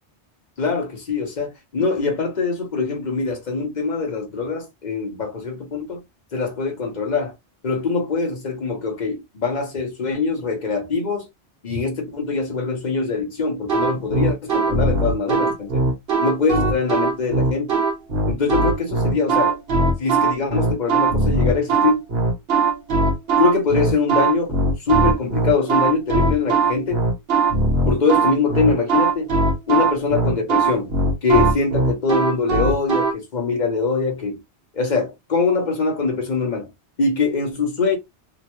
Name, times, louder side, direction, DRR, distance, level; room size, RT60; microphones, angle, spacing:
voice 1, 0.6-6.0 6.3-7.3 7.6-11.3 11.6-15.8 16.2-17.8 18.3-19.6 20.0-22.0 23.4-24.6 24.8-27.1 27.9-29.3 29.7-30.9 31.2-34.4 34.7-36.7 37.0-38.0, left 4 dB, 45° left, 1.0 m, -23 dB
sound 1, 13.7-33.1, right 3 dB, 60° right, 1.1 m, -20 dB
2.9 x 2.1 x 2.9 m
omnidirectional pair, 1.2 m